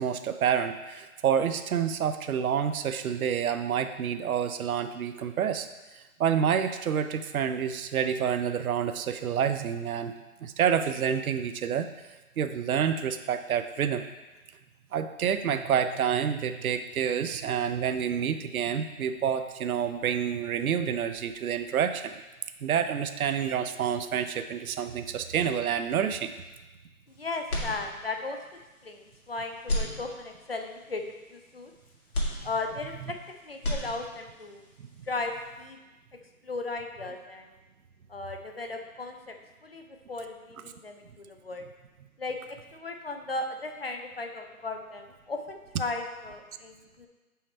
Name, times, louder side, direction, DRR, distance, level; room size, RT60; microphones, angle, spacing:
voice 1, 0.0-5.7 6.2-10.1 10.4-11.9 12.4-14.0 14.9-22.1 22.6-26.3 33.0-33.1, right 8 dB, 75° right, 9 dB, 0.6 m, -28 dB
voice 2, 27.1-28.4 28.8-31.0 31.3-31.7 32.4-33.2 33.4-34.6 35.1-35.3 35.6-35.8 36.4-37.5 38.1-39.3 39.6-41.7 42.2-47.1, left 3 dB, 45° left, 5 dB, 0.5 m, -36 dB
sound 1, 27.5-28.4 28.8-28.9 29.6-30.6 32.1-33.2 33.5-34.4, left 1 dB, 85° left, 2.2 m, -33 dB
5.6 x 5.3 x 4.3 m, 1.1 s
hypercardioid pair, 175°, 43 cm